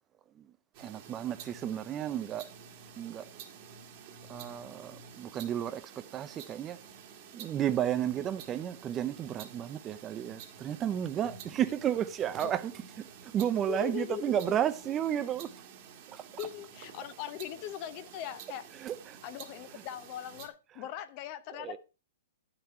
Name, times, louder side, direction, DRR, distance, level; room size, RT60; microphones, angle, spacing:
sound 1, 0.7-20.5, right 7 dB, 40° right, 1.4 m, -50 dB
voice 1, 0.8-2.5 3.0-3.3 4.3-6.8 7.3-15.5 16.1-16.5 18.7-19.2 19.7-19.8 20.7-20.9 21.5-21.8, right 10 dB, 20° right, 0.5 m, -33 dB
voice 2, 13.7-14.4 16.4-18.7 19.2-21.8, left 12 dB, 40° left, 0.7 m, -40 dB
9.6 x 5.9 x 4.3 m
hypercardioid pair, 145°, 0 cm